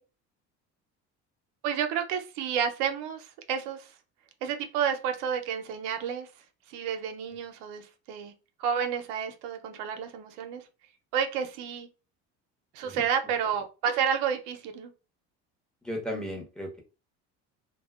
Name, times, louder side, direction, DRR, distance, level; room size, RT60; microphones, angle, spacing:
voice 1, 1.6-3.9 4.4-6.3 6.7-8.3 8.6-10.6 11.1-11.9 12.7-14.9, right 7 dB, 85° right, 7 dB, 0.6 m, -30 dB
voice 2, 15.8-16.8, equal, ahead, 1 dB, 0.7 m, -35 dB
2.6 x 2.1 x 2.3 m, 0.32 s
cardioid pair, 120°, 32 cm